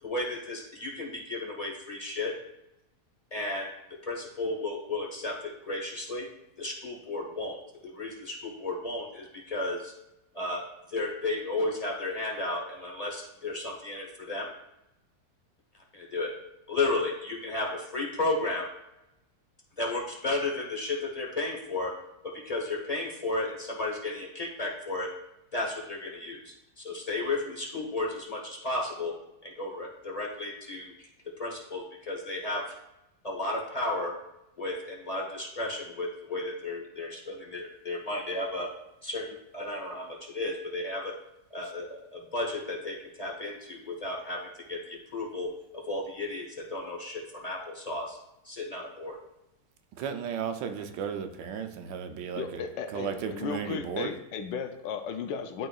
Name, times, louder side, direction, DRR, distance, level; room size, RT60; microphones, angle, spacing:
voice 1, 0.0-2.3 3.3-3.7 4.0-6.3 6.6-7.6 7.8-9.9 10.3-10.6 10.9-14.5 15.9-16.3 16.7-18.7 19.8-21.9 22.4-25.1 25.5-29.1 29.4-31.1 31.4-32.6 33.2-34.1 34.6-38.7 39.0-39.3 39.5-41.1 41.5-44.4 44.7-48.2 48.4-49.2, left 2 dB, 30° left, -2 dB, 0.8 m, -33 dB
voice 2, 50.0-52.6 52.9-54.1, right 7 dB, 80° right, 6 dB, 1.3 m, -34 dB
voice 3, 52.4-55.7, left 6 dB, 85° left, 7 dB, 1.3 m, -35 dB
11.0 x 3.8 x 2.3 m, 0.89 s
omnidirectional pair, 1.9 m